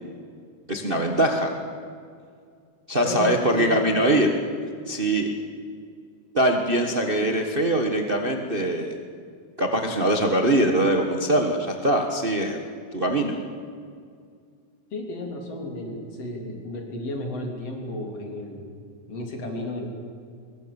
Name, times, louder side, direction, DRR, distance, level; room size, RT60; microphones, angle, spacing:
voice 1, 0.7-1.5 2.9-4.3 4.9-5.3 6.3-9.0 9.6-12.6 12.9-13.4, right 1 dB, 55° right, 3 dB, 0.5 m, -22 dB
voice 2, 3.0-3.8 14.9-18.7 19.1-19.9, left 1 dB, 50° left, 2 dB, 4.3 m, -33 dB
23.0 x 22.0 x 7.1 m, 2.2 s
omnidirectional pair, 3.7 m